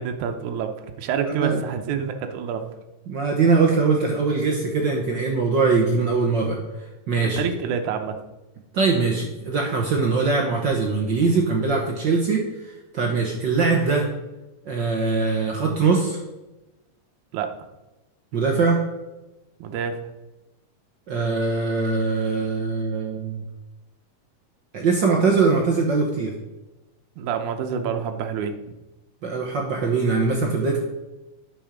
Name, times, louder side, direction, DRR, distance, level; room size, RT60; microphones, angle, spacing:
voice 1, 0.0-2.7 7.4-8.2 17.3-17.5 19.6-20.0 27.2-28.5, right 7 dB, 85° right, 5 dB, 2.3 m, -27 dB
voice 2, 1.3-1.6 3.1-6.6 7.1-7.4 8.7-14.1 14.6-16.2 18.3-18.8 21.1-23.4 24.7-26.3 29.2-30.8, right 4 dB, 60° right, 1 dB, 1.2 m, -22 dB
9.1 x 7.1 x 5.0 m, 1.0 s
omnidirectional pair, 3.4 m